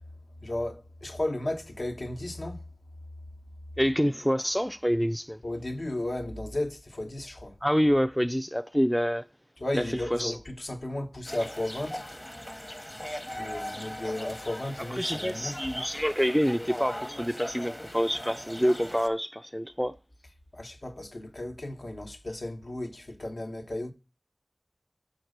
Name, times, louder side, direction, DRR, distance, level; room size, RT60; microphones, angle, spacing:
voice 1, 0.4-2.6 5.4-7.5 9.6-12.1 13.4-15.7 20.5-23.9, left 1 dB, 65° left, 1.0 m, -34 dB
voice 2, 3.8-5.4 7.6-9.3 9.7-9.8 10.1-10.4 15.0-19.9, equal, ahead, 0.4 m, -27 dB
sound 1, 11.2-19.1, equal, 20° left, 0.9 m, -39 dB
6.5 x 4.5 x 6.5 m
wide cardioid pair, 55°, 0 cm